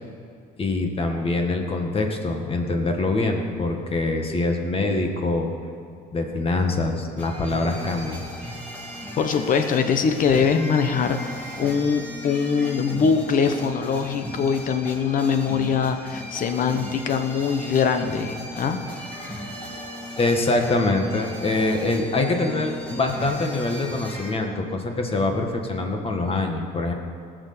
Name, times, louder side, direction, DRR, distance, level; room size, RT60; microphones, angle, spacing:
voice 1, 0.6-5.5 6.1-8.3 20.2-26.9, left 2 dB, 35° left, 3 dB, 1.8 m, -24 dB
sound 1, 7.2-24.3, equal, 10° left, 3.2 m, -37 dB
voice 2, 9.2-18.8, left 6 dB, 50° left, 7 dB, 1.2 m, -22 dB
18.0 x 6.5 x 6.9 m, 2.4 s
cardioid pair, 110°, 17 cm